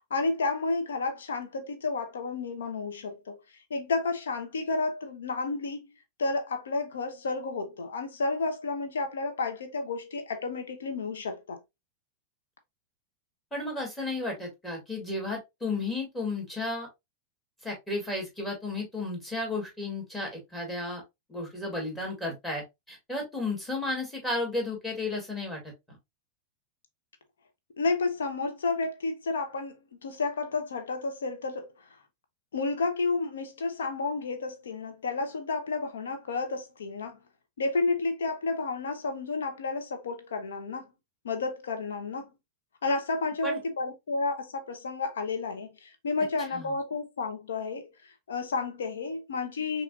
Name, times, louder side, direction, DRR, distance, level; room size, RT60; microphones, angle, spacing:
voice 1, 0.1-3.4 3.7-5.9 6.2-11.6 27.8-31.7 32.5-37.2 37.6-40.9 41.2-42.3 42.8-49.8, left 3 dB, 65° left, 1.0 m, -31 dB
voice 2, 13.5-16.9 17.6-21.0 21.3-25.6 25.9-26.0 43.4-43.6 46.5-46.7, left 2 dB, 10° left, 2.3 m, -33 dB
5.8 x 2.9 x 2.4 m
figure-of-eight pair, 90°, 0 cm